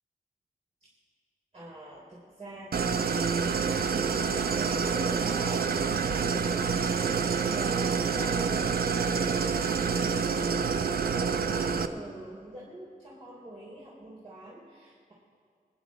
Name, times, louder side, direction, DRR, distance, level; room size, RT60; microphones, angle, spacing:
voice 1, 1.5-3.3 3.9-10.8 11.1-15.1, right 1 dB, 40° right, -7 dB, 3.8 m, -44 dB
Idling, 2.7-11.9, right 6 dB, 80° right, 0.7 m, -27 dB
27.5 x 10.5 x 4.2 m, 2.3 s
wide cardioid pair, 120°, 15 cm